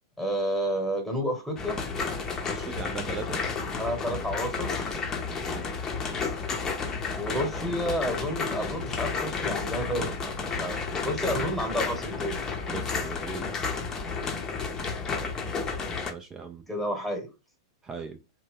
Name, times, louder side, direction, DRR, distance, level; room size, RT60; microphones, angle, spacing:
voice 1, 0.2-1.8 3.6-4.8 7.1-12.4 16.7-17.3, equal, ahead, 1.2 m, -31 dB
sound 1, 1.6-16.1, left 4 dB, 20° left, 0.7 m, -32 dB
voice 2, 2.5-3.4 5.3-5.9 12.7-13.4 16.1-16.6 17.8-18.2, right 5 dB, 20° right, 0.4 m, -38 dB
2.8 x 2.2 x 3.4 m
hypercardioid pair, 105°, 2 cm